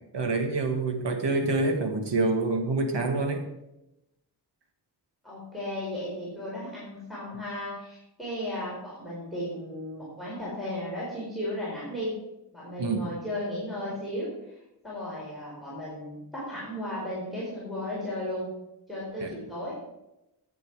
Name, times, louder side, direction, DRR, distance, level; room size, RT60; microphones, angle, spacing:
voice 1, 0.1-3.5 12.8-13.1 19.2-19.3, right 3 dB, 80° right, 5 dB, 1.7 m, -27 dB
voice 2, 5.2-12.1 12.5-14.5 14.8-18.5 18.9-19.8, left 1 dB, ahead, -8 dB, 4.3 m, -35 dB
11.0 x 8.4 x 4.7 m, 0.91 s
wide cardioid pair, 125°, 41 cm